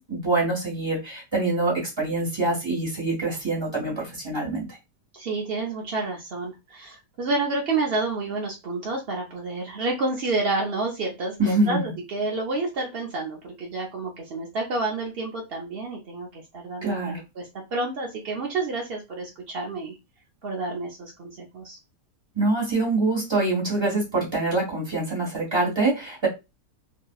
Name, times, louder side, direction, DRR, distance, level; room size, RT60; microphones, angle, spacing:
voice 1, 0.1-4.7 11.4-11.8 16.8-17.2 22.3-26.3, right 2 dB, 15° right, -4 dB, 1.3 m, -25 dB
voice 2, 5.1-20.0 20.4-21.8, right 3 dB, 70° right, -1 dB, 0.5 m, -29 dB
2.9 x 2.7 x 2.3 m, 0.24 s
omnidirectional pair, 1.8 m